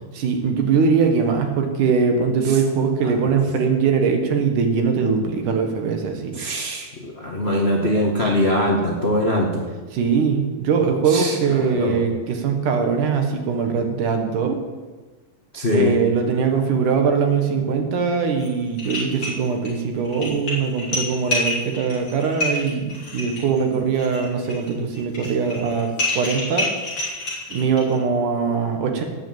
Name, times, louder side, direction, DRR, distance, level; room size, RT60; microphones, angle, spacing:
voice 1, 0.1-6.4 9.9-14.6 15.7-26.7 27.5-29.0, right 5 dB, 65° right, 4 dB, 2.8 m, -21 dB
voice 2, 6.3-9.6 11.1-12.0 15.5-15.9, left 1 dB, 60° left, -2 dB, 0.6 m, -22 dB
sound 1, 18.4-18.5 18.8-19.7 20.0-28.0, left 2 dB, 35° left, 4.4 m, -28 dB
18.0 x 6.2 x 7.8 m, 1.3 s
omnidirectional pair, 4.1 m